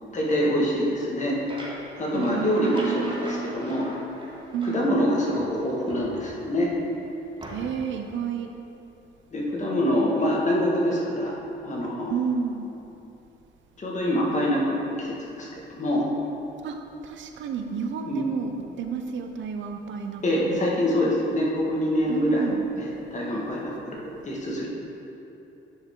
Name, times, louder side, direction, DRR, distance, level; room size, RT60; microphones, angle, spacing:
voice 1, 0.1-1.4 2.0-3.9 4.7-6.7 9.3-11.3 11.6-12.1 13.8-16.0 18.1-18.2 20.2-22.4 22.8-24.7, equal, 35° left, -3 dB, 1.8 m, -25 dB
sound 1, 1.0-4.9 5.3-6.6 7.4-7.9, right 1 dB, 25° right, 1.6 m, -41 dB
voice 2, 2.1-3.6 4.5-4.9 7.5-8.5 12.1-12.7 16.6-16.8 17.0-18.5 18.8-20.7 22.1-22.7, right 6 dB, 70° right, 5 dB, 0.7 m, -31 dB
10.0 x 5.4 x 3.8 m, 2.9 s
cardioid pair, 90°, 20 cm